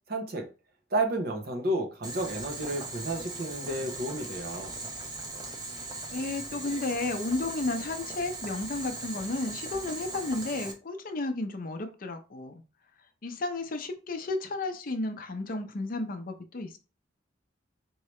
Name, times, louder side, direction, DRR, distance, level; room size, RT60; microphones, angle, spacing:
voice 1, 0.1-0.5 0.9-4.8, right 1 dB, 55° right, 0.9 m, -31 dB
Boiling, 2.0-10.7, right 2 dB, 20° right, 0.8 m, -39 dB
voice 2, 5.8-12.6 13.2-16.8, left 2 dB, 50° left, 0.6 m, -33 dB
4.6 x 2.8 x 3.1 m
head